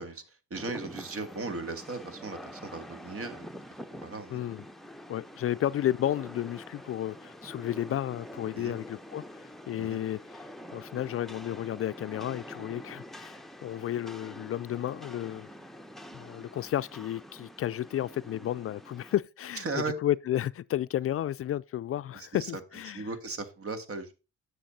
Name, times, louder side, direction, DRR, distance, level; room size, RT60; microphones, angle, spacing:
voice 1, 0.0-4.4 8.5-8.8 9.8-10.0 19.6-19.9 22.1-22.6 22.9-24.1, right 4 dB, 50° right, 1.9 m, -37 dB
Rain, 0.5-19.2, equal, ahead, 0.9 m, -46 dB
voice 2, 4.3-4.6 5.1-15.5 16.1-19.6 20.0-23.1, left 12 dB, 50° left, 0.4 m, -32 dB
10.0 x 6.7 x 4.1 m
cardioid pair, 90°, 30 cm